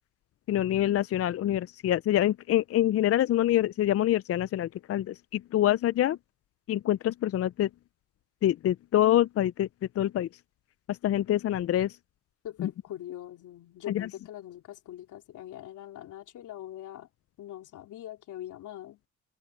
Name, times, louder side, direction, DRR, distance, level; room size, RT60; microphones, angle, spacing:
voice 1, 0.5-6.2 6.7-7.7 8.4-9.7 10.0-10.3 10.9-12.0 12.6-12.7 13.9-14.1, left 12 dB, 50° left, 0.5 m, -26 dB
voice 2, 12.4-17.1 17.4-19.0, left 12 dB, 80° left, 4.1 m, -42 dB
open air
cardioid pair, 90°, 30 cm